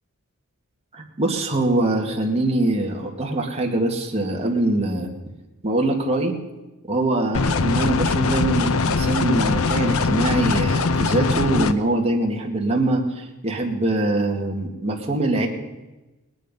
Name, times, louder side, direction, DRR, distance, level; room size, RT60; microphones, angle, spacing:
voice 1, 0.9-5.1 5.6-6.4 6.8-15.5, right 2 dB, 30° right, 0 dB, 2.0 m, -23 dB
sound 1, 7.3-11.7, left 4 dB, 65° left, 0.7 m, -21 dB
20.0 x 10.0 x 5.4 m, 1.1 s
head